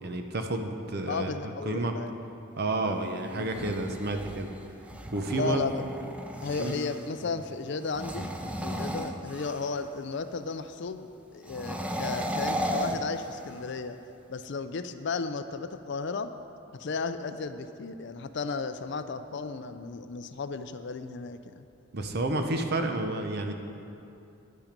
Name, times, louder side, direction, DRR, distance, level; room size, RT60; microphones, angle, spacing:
voice 1, 0.0-1.3 1.6-2.0 2.6-4.5 5.1-5.8 6.6-6.8 21.9-23.5, right 2 dB, 50° right, 5 dB, 0.8 m, -30 dB
voice 2, 1.1-2.1 2.8-3.0 3.3-3.7 5.3-5.8 6.4-8.3 8.6-14.0 14.3-16.3 16.8-21.7, left 4 dB, 55° left, 10 dB, 0.4 m, -34 dB
sound 1, 3.3-7.1 7.8-9.9 11.4-13.7, equal, 5° right, 0.5 m, -35 dB
10.5 x 8.7 x 5.2 m, 2.7 s
head